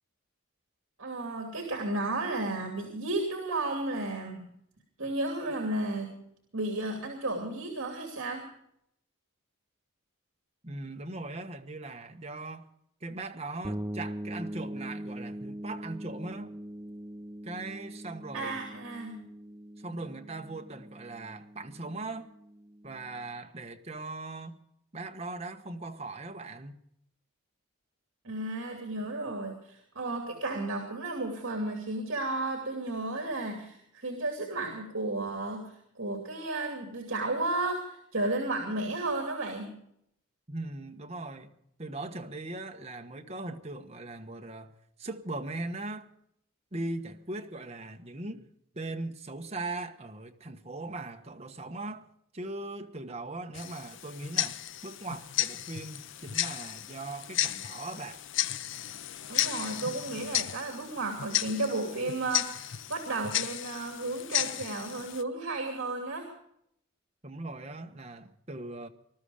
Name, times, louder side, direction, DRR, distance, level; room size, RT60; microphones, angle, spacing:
voice 1, 1.0-4.5 5.0-6.1 6.5-8.4 18.3-19.2 28.2-39.8 59.3-66.3, right 2 dB, 65° right, 2.7 m, -33 dB
voice 2, 10.6-12.7 13.0-16.5 17.4-18.6 19.8-22.3 22.8-24.6 24.9-26.7 40.5-41.5 41.8-44.7 45.0-46.1 46.7-48.5 48.7-52.1 52.3-58.2 67.2-68.9, right 2 dB, 30° right, 1.2 m, -39 dB
sound 1, 13.6-23.2, right 1 dB, 15° right, 0.5 m, -42 dB
Tick-tock, 53.5-65.2, left 12 dB, 60° left, 0.5 m, -34 dB
20.5 x 12.5 x 5.0 m
head